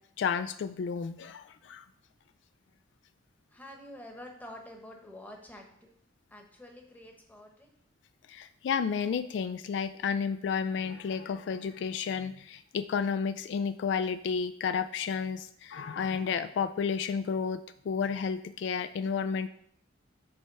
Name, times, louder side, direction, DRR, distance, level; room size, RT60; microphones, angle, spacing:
voice 1, 0.2-1.8 8.3-19.5, left 6 dB, 70° left, 11 dB, 0.3 m, -31 dB
voice 2, 3.5-5.9 6.3-7.7, left 1 dB, 10° left, 1 dB, 1.0 m, -48 dB
7.7 x 3.4 x 5.5 m, 0.67 s
head